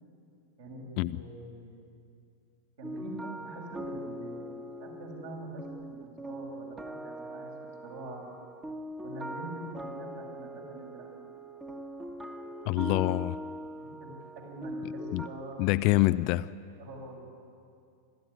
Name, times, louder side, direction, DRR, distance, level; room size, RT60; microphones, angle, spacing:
voice 1, 1.1-1.8 2.8-8.2 9.0-11.1 13.8-16.1 16.8-17.2, right 1 dB, 60° right, 7.1 m, -44 dB
sound 1, 2.8-15.3, equal, 15° right, 1.7 m, -41 dB
voice 2, 12.7-13.4 15.1-15.3 15.6-16.5, left 19 dB, 45° left, 0.5 m, -26 dB
27.5 x 13.0 x 9.9 m
figure-of-eight pair, 90°, 0 cm